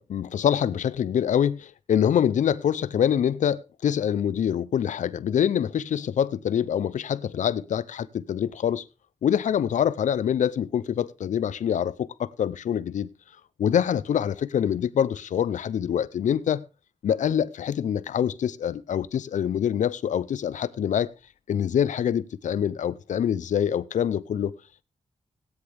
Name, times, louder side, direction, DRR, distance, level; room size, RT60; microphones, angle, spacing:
voice 1, 0.0-8.8 9.2-13.1 13.6-16.6 17.0-21.1 21.5-24.5, left 9 dB, 90° left, 0.6 m, -25 dB
16.5 x 9.9 x 3.4 m
cardioid pair, 65°, 12 cm